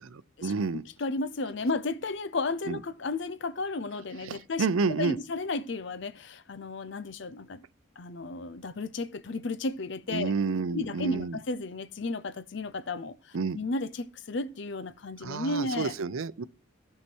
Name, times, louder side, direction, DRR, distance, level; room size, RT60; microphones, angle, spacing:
voice 1, 0.1-0.8 2.7-2.8 4.2-5.2 10.1-11.4 13.3-13.6 15.2-16.4, right 4 dB, 85° right, 0.6 m, -30 dB
voice 2, 1.0-7.6 8.0-10.3 10.7-15.9, left 3 dB, 60° left, 0.6 m, -33 dB
15.0 x 5.7 x 4.5 m
head